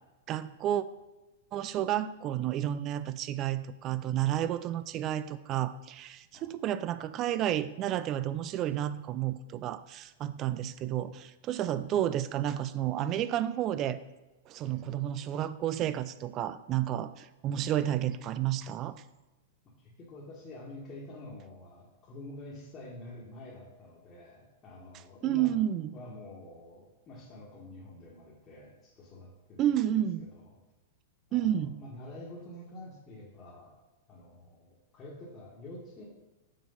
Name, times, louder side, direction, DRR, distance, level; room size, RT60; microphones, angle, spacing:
voice 1, 0.3-0.8 1.5-14.0 14.5-19.0 25.2-25.9 29.6-30.3 31.3-31.8, right 11 dB, 35° right, 14 dB, 0.4 m, -31 dB
voice 2, 14.6-15.0 19.8-25.6 25.9-29.9 30.2-30.6 31.3-33.7 34.1-36.0, left 1 dB, 30° left, -5 dB, 1.6 m, -48 dB
6.0 x 4.4 x 5.6 m, 1.1 s
hypercardioid pair, 120°, 0 cm